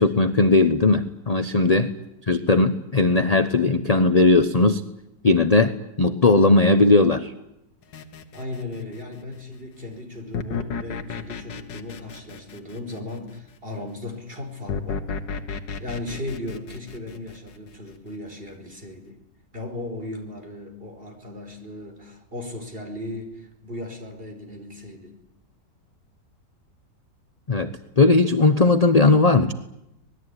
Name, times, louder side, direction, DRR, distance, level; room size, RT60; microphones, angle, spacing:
voice 1, 0.0-1.9 2.3-4.8 5.2-7.3 27.5-29.5, left 3 dB, 30° left, 10 dB, 0.8 m, -18 dB
sound 1, 7.9-9.1 10.3-13.4 14.7-17.9, left 5 dB, 85° left, 2.1 m, -33 dB
voice 2, 8.3-15.1 15.8-19.2 19.5-25.2, left 2 dB, 30° right, 5 dB, 5.2 m, -36 dB
25.5 x 20.0 x 9.8 m, 0.86 s
omnidirectional pair, 1.9 m